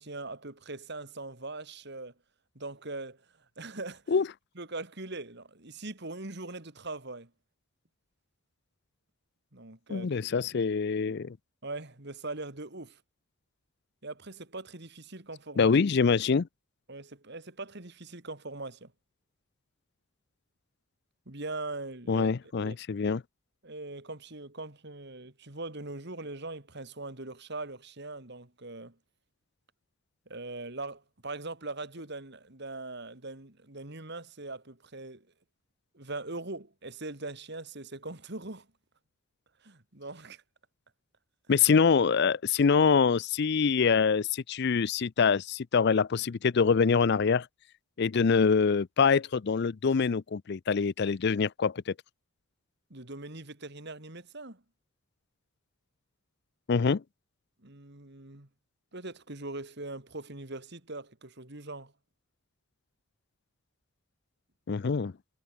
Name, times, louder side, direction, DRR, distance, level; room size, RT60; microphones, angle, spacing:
voice 1, 0.0-2.1 2.5-3.2 3.6-4.2 4.6-7.3 9.5-10.1 10.5-10.6 11.6-13.0 14.0-15.8 16.9-18.9 21.3-22.3 22.6-22.8 23.6-29.0 30.3-35.3 35.9-38.7 39.6-40.4 41.6-41.7 52.9-54.6 57.6-58.5 58.9-61.9, right 2 dB, 50° right, 2.8 m, -41 dB
voice 2, 9.9-11.4 15.6-16.5 22.1-23.2 41.5-47.5 48.0-51.9 56.7-57.0 64.7-65.1, left 5 dB, 50° left, 0.4 m, -25 dB
head